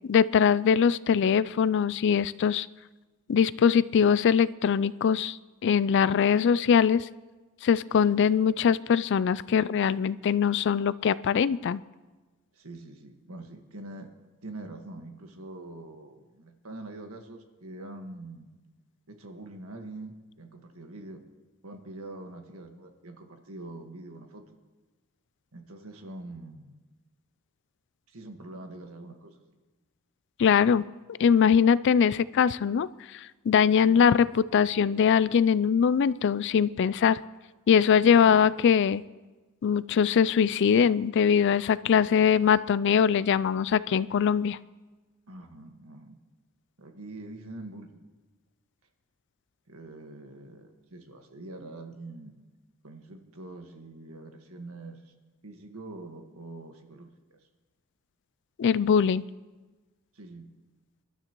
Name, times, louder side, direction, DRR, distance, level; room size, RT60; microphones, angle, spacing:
voice 1, 0.1-2.7 3.3-5.4 5.6-7.1 7.6-11.8 30.4-30.9 31.2-32.9 33.1-37.2 37.7-39.0 39.6-44.6 58.6-59.3, left 7 dB, 55° left, 18 dB, 0.3 m, -22 dB
voice 2, 12.5-14.1 14.4-18.5 19.1-21.2 21.6-24.5 25.5-26.7 28.1-29.4 33.8-34.1 38.1-38.4 45.3-46.2 46.8-48.0 49.7-52.4 52.8-55.1 55.4-57.4 60.1-60.4, right 2 dB, 70° right, 4 dB, 1.6 m, -44 dB
27.5 x 12.5 x 3.0 m, 1.2 s
head